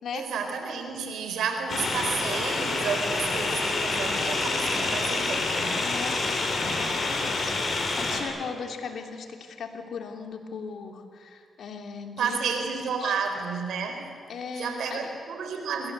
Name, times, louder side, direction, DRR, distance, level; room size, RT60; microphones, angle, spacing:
voice 1, 0.1-5.8 12.2-14.1 14.6-15.9, right 6 dB, 80° right, 5 dB, 4.4 m, -31 dB
sound 1, 1.7-8.2, left 3 dB, 60° left, 6.6 m, -27 dB
voice 2, 5.8-12.4 13.0-13.1 14.3-15.2, left 6 dB, 75° left, 5 dB, 3.2 m, -38 dB
28.0 x 23.5 x 8.2 m, 2.1 s
supercardioid pair, 50°, 0 cm